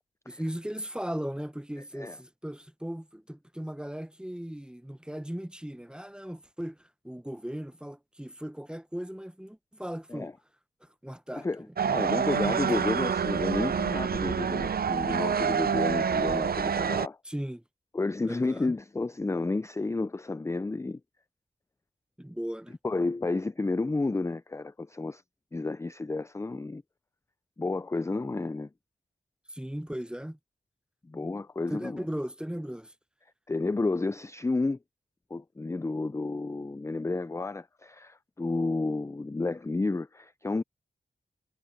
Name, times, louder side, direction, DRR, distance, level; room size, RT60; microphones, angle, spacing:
voice 1, 0.3-10.3 10.8-12.2 17.2-17.6 18.2-18.7 22.2-22.8 29.5-30.4 31.7-32.9, equal, 5° right, 0.8 m, -37 dB
voice 2, 11.3-17.2 17.9-21.0 22.8-25.2 25.5-26.8 27.6-28.7 31.1-32.0 33.5-34.8 35.3-40.6, left 3 dB, 15° left, 0.4 m, -31 dB
sound 1, 11.8-17.1, right 7 dB, 60° right, 0.5 m, -27 dB
wide cardioid pair, 70°, 18 cm